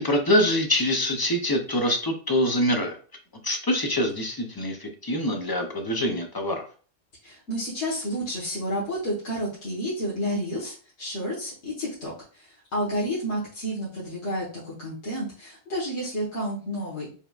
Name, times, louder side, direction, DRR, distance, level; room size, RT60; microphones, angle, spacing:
voice 1, 0.0-3.0 3.4-6.7, left 1 dB, 40° left, 3 dB, 0.3 m, -25 dB
voice 2, 7.2-17.1, equal, 65° left, -7 dB, 1.6 m, -30 dB
4.6 x 3.4 x 2.4 m, 0.40 s
omnidirectional pair, 1.3 m